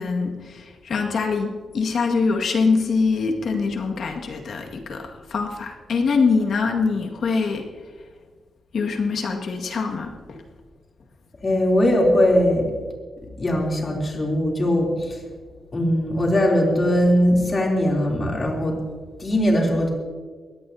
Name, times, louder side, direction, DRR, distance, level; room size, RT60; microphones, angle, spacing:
voice 1, 0.0-7.7 8.7-10.4, left 4 dB, 60° left, 2 dB, 1.9 m, -24 dB
voice 2, 11.4-12.7 13.4-15.2 15.7-18.8 19.2-19.9, equal, 30° left, -1 dB, 3.1 m, -20 dB
22.0 x 17.0 x 2.8 m, 1.5 s
wide cardioid pair, 140°, 0 cm